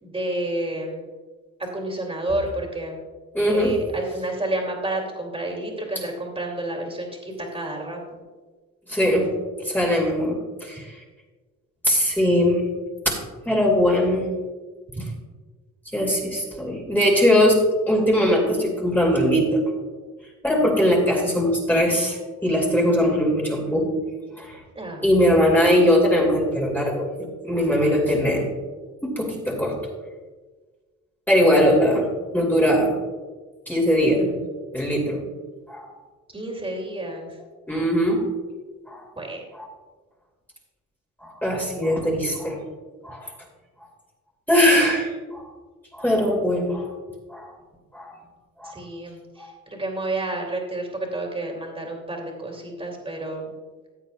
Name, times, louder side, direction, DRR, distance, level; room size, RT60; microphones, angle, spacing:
voice 1, 0.0-1.0 1.6-3.0 3.5-8.0 14.9-15.0 24.7-25.1 36.3-37.3 39.2-39.4 48.6-53.5, right 1 dB, 20° right, 1 dB, 2.8 m, -30 dB
voice 2, 3.3-3.8 8.9-9.3 9.6-11.0 11.8-12.6 13.1-13.2 13.4-14.3 15.9-17.6 17.9-19.6 20.4-23.9 24.4-24.6 25.0-28.5 29.0-29.7 31.3-32.1 32.3-32.9 33.7-34.3 34.7-35.2 35.7-36.0 37.7-38.2 38.9-39.0 39.5-39.7 41.2-42.6 43.0-43.3 44.5-45.4 45.9-46.9 47.3-47.5 47.9-48.1 48.6-48.7 49.4-49.5, equal, 5° left, -2 dB, 2.5 m, -20 dB
15.5 x 8.1 x 2.4 m, 1.4 s
cardioid pair, 90°, 30 cm